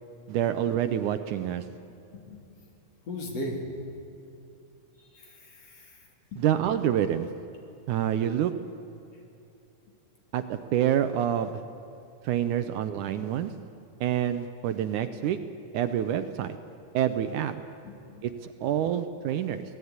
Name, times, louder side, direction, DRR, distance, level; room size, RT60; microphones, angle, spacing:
voice 1, 0.3-1.6 6.4-7.3 7.9-8.5 10.3-11.6 12.2-13.5 14.0-15.4 15.7-16.6 16.9-17.5 18.2-19.6, right 10 dB, 70° right, 9 dB, 2.1 m, -27 dB
voice 2, 3.1-3.6 5.1-5.9 6.3-6.4 17.8-18.3, left 1 dB, 50° left, 0 dB, 4.4 m, -37 dB
26.5 x 18.0 x 9.6 m, 2.8 s
omnidirectional pair, 3.9 m